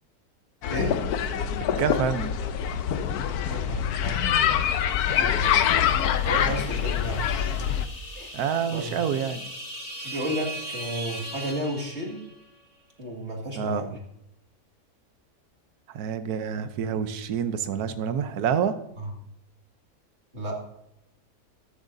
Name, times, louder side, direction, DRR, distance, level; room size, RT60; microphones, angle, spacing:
sound 1, 0.6-7.8, left 9 dB, 75° left, 1.2 m, -25 dB
voice 1, 1.8-2.4 8.3-9.5 13.6-13.8 15.9-18.8, right 7 dB, 75° right, 10 dB, 1.3 m, -27 dB
voice 2, 3.5-4.3 5.2-5.6 6.3-7.3 8.1-8.3 8.7-9.0 10.0-12.2 13.0-14.0 19.0-19.1 20.3-20.6, right 1 dB, 45° right, 0 dB, 2.4 m, -32 dB
sound 2, 4.5-12.5, right 1 dB, 25° left, 1.4 m, -40 dB
14.0 x 12.0 x 2.7 m, 0.77 s
omnidirectional pair, 1.6 m